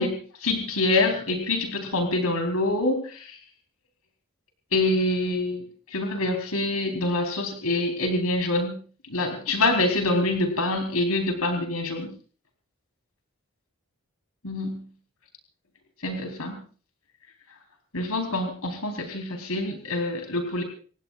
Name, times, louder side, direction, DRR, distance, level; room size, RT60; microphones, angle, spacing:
voice 1, 0.0-3.4 4.7-8.8 9.1-12.1 14.4-14.9 16.0-16.6 17.9-20.6, left 2 dB, 90° left, 4 dB, 4.1 m, -26 dB
29.5 x 16.5 x 2.5 m, 0.40 s
head